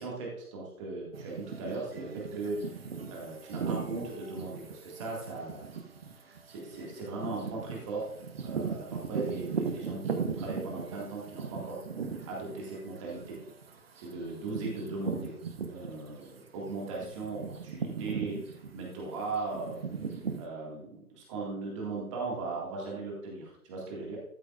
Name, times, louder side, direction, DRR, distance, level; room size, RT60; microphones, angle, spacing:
voice 1, 0.0-5.7 6.1-8.1 8.4-11.8 12.1-13.4 14.0-15.3 15.7-19.8 20.4-24.2, right 3 dB, 20° right, -3 dB, 2.0 m, -38 dB
sound 1, 1.1-16.3 16.6-20.4, right 5 dB, 40° right, 1.1 m, -38 dB
13.0 x 7.8 x 2.5 m, 0.77 s
figure-of-eight pair, 145°, 45 cm